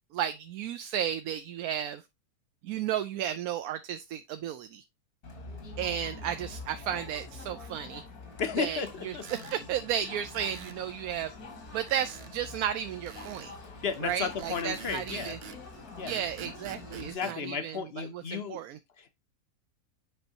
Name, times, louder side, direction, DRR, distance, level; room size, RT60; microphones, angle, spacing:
voice 1, 0.1-2.0 2.6-4.8 5.8-8.0 8.6-11.3 11.7-13.5 14.0-15.4 16.0-18.8, right 10 dB, 75° right, 1.0 m, -33 dB
Crowd, 5.2-17.1, left 3 dB, 80° left, 2.4 m, -45 dB
voice 2, 8.4-9.3 13.8-15.4 16.0-16.2 17.0-18.6 19.0-19.1, left 6 dB, 50° left, 0.8 m, -34 dB
sound 1, 9.2-9.6 10.3-10.8 11.9-12.3 13.1-13.5 14.4-15.6 16.1-17.4, right 6 dB, 55° right, 0.5 m, -46 dB
8.0 x 5.2 x 2.8 m
omnidirectional pair, 1.6 m